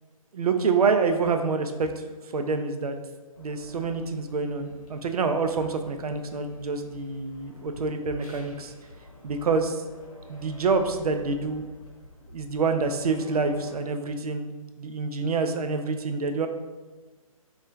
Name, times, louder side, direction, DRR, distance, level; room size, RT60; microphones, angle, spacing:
voice 1, 0.3-1.9 2.3-2.9 3.4-8.7 9.2-9.8 10.3-11.7 12.3-14.5 14.8-16.5, right 4 dB, 90° right, 6 dB, 0.4 m, -27 dB
sound 1, 3.3-13.8, left 1 dB, 85° left, 0.8 m, -49 dB
3.7 x 2.3 x 2.3 m, 1.2 s
hypercardioid pair, 140°, 19 cm